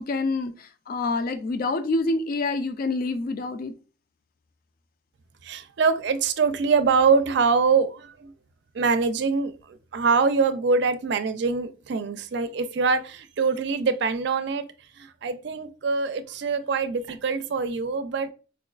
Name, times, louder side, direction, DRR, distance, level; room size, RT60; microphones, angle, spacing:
voice 1, 0.0-3.7, left 3 dB, 50° left, 0.4 m, -27 dB
voice 2, 5.4-8.3 8.7-14.6 15.0-18.3, right 5 dB, 65° right, 0.4 m, -24 dB
4.6 x 2.3 x 2.3 m
head